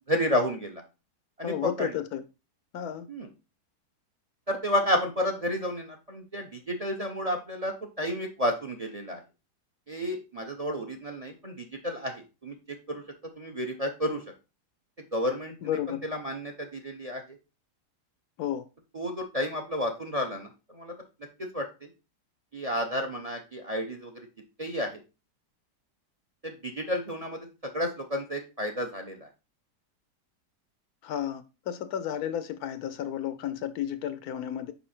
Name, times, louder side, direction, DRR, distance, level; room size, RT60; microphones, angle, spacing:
voice 1, 0.1-0.8 1.4-2.0 3.1-3.3 4.5-9.2 9.9-12.5 12.9-13.0 13.4-14.2 15.1-17.2 18.9-20.9 21.5-21.9 22.5-24.2 24.6-25.0 26.4-29.3, equal, 35° right, 0.7 m, -31 dB
voice 2, 1.4-2.2 2.7-3.1 15.6-16.0 18.4-18.6 31.0-34.7, left 10 dB, 70° left, 1.0 m, -32 dB
5.6 x 5.0 x 4.3 m
omnidirectional pair, 1.8 m